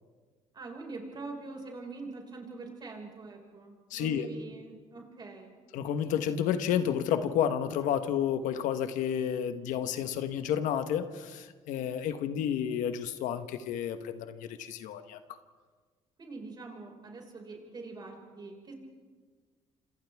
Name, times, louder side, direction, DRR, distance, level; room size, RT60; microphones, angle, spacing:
voice 1, 0.5-5.5 16.2-18.7, right 3 dB, 35° right, 1 dB, 5.4 m, -44 dB
voice 2, 3.9-4.3 5.7-15.2, left 9 dB, 85° left, 9 dB, 1.3 m, -31 dB
27.5 x 26.5 x 3.6 m, 1.5 s
cardioid pair, 110°, 13 cm